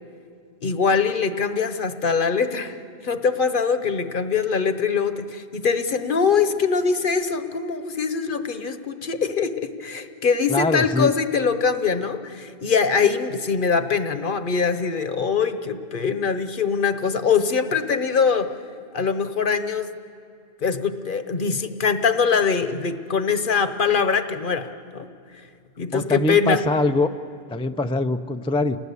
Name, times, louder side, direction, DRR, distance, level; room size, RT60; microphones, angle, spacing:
voice 1, 0.6-2.8 3.0-18.5 18.9-19.9 20.6-25.1 25.8-26.6, left 5 dB, 55° left, 10 dB, 1.1 m, -23 dB
voice 2, 10.5-11.1 25.9-27.1 27.5-28.8, left 2 dB, 10° left, 8 dB, 0.4 m, -23 dB
29.0 x 19.5 x 8.3 m, 2.4 s
omnidirectional pair, 1.1 m